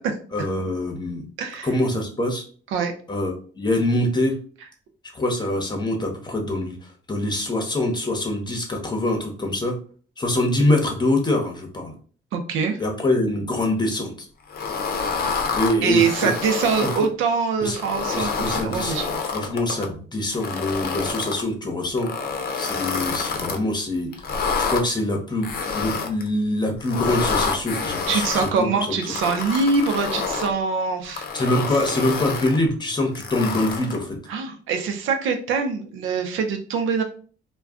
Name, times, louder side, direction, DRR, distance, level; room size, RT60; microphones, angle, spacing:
voice 1, 0.3-1.2 1.6-2.4 3.1-4.3 5.1-9.8 10.2-11.9 12.8-14.1 15.6-16.3 17.6-17.8 18.1-18.9 19.3-22.1 22.5-24.1 24.6-29.0 31.3-34.2, left 1 dB, 20° left, 2 dB, 0.9 m, -24 dB
voice 2, 1.4-1.7 2.7-2.9 12.3-12.8 15.8-19.2 28.1-31.3 31.7-31.8 34.3-37.0, right 5 dB, 85° right, 6 dB, 0.6 m, -24 dB
sound 1, 14.5-17.1 17.7-19.9 20.3-21.4 22.0-23.6 24.1-24.8 25.4-26.3 26.8-28.5 29.0-30.5 31.0-32.6 33.2-34.0, left 5 dB, 50° left, 0.6 m, -28 dB
2.3 x 2.2 x 3.6 m, 0.42 s
cardioid pair, 90°, 20 cm